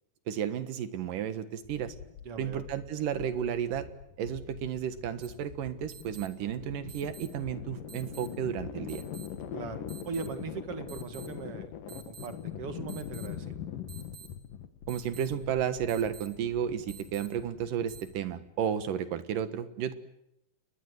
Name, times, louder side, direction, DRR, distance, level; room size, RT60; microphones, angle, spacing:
voice 1, 0.3-1.9 2.4-3.9 4.2-9.0 14.9-19.9, right 9 dB, 80° right, 11 dB, 3.2 m, -33 dB
sound 1, 1.6-18.6, left 9 dB, 85° left, 3.3 m, -43 dB
voice 2, 2.2-2.6 9.5-13.6, right 5 dB, 50° right, 9 dB, 2.6 m, -40 dB
sound 2, 5.2-5.3 5.9-6.3 6.9-7.3 7.9-8.3 8.9-9.3 9.9-10.3 10.9-11.3 11.9-12.3 12.9-13.3 13.9-14.3 14.9-15.3 15.9-16.3 16.9-17.3 17.9-18.0, right 9 dB, 30° right, 5.4 m, -49 dB
30.0 x 21.5 x 8.1 m, 0.82 s
omnidirectional pair, 3.8 m